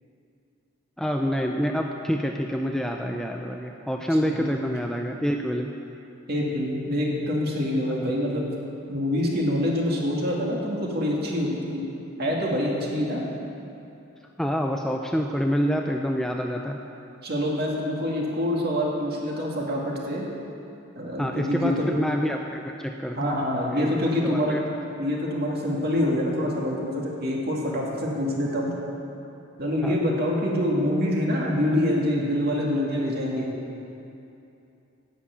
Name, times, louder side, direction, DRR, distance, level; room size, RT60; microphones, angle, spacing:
voice 1, 1.0-5.8 14.4-16.8 21.2-23.4 23.7-24.6 29.8-30.0, equal, ahead, 2 dB, 0.4 m, -27 dB
voice 2, 6.3-8.5 8.9-11.9 12.2-13.2 17.2-20.2 20.9-21.8 23.2-24.6 25.0-28.7 29.6-33.5, left 1 dB, 45° right, -2 dB, 2.3 m, -26 dB
11.0 x 8.5 x 8.3 m, 2.8 s
head